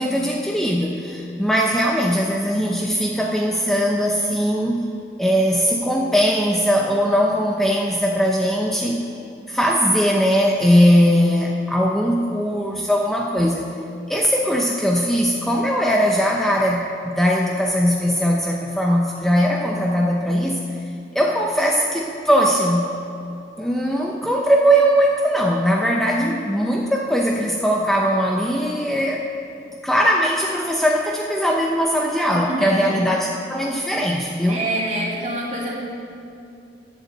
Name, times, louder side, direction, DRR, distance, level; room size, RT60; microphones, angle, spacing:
voice 1, 0.0-4.9 5.2-9.1 9.5-13.7 14.1-20.6 21.1-22.9 23.6-29.2 29.8-34.6, equal, ahead, -1 dB, 0.7 m, -20 dB
voice 2, 32.5-32.9 34.5-35.7, right 1 dB, 40° right, -4 dB, 2.8 m, -26 dB
12.0 x 8.1 x 7.7 m, 2.6 s
head